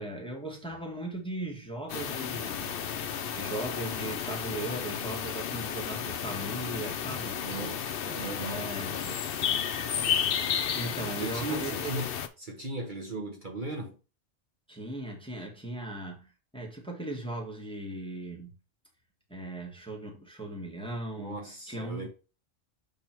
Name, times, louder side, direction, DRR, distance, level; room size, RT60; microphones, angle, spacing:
voice 1, 0.0-2.7 3.4-7.4 8.4-9.1 10.7-12.0 14.7-18.6 19.3-22.1, right 1 dB, 5° left, 1.4 m, -38 dB
sound 1, 1.9-12.3, left 8 dB, 55° left, 0.7 m, -32 dB
voice 2, 7.4-7.8 8.1-8.7 11.2-14.0 21.2-22.1, right 2 dB, 40° right, 1.4 m, -37 dB
7.3 x 3.6 x 4.5 m
omnidirectional pair, 1.3 m